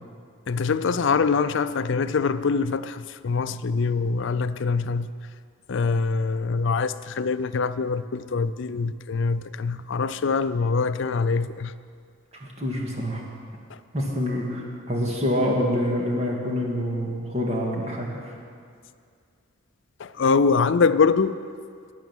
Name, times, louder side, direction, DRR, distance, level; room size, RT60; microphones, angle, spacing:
voice 1, 0.5-5.1 5.7-11.7 20.0-21.3, left 4 dB, 60° left, 0.4 m, -24 dB
voice 2, 12.4-13.2 13.9-18.4, equal, 30° right, 2.0 m, -26 dB
12.0 x 10.0 x 7.2 m
head